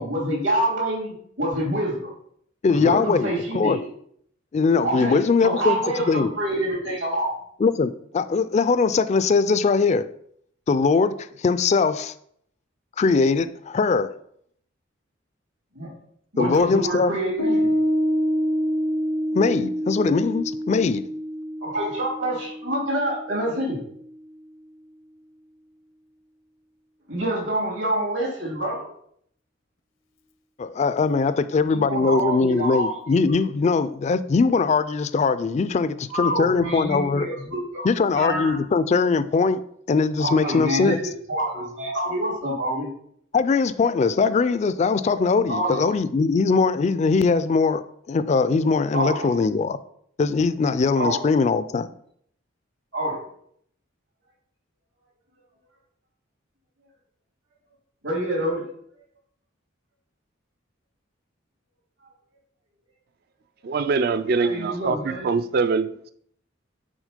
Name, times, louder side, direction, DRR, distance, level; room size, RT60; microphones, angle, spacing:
voice 1, 0.0-2.1 2.7-3.8 4.8-7.4 15.7-15.9 16.3-17.8 21.6-23.8 27.1-28.9 31.6-33.0 36.1-37.8 38.1-38.6 40.2-42.9 45.5-45.9 48.9-49.3 50.9-51.2 52.9-53.2 58.0-58.6 64.3-65.3, right 1 dB, 75° right, 2.8 m, -27 dB
voice 2, 2.6-3.8 4.5-5.8 6.1-6.3 7.6-10.1 10.7-12.1 13.0-14.1 16.4-17.1 19.3-21.1 30.6-37.3 37.8-39.6 39.9-41.0 43.3-47.8 48.1-49.8 50.2-51.9, left 4 dB, 35° left, 0.3 m, -21 dB
Piano, 17.4-24.1, equal, 85° left, 0.8 m, -27 dB
voice 3, 63.6-66.1, right 4 dB, 50° right, 0.3 m, -24 dB
6.3 x 4.0 x 5.1 m
head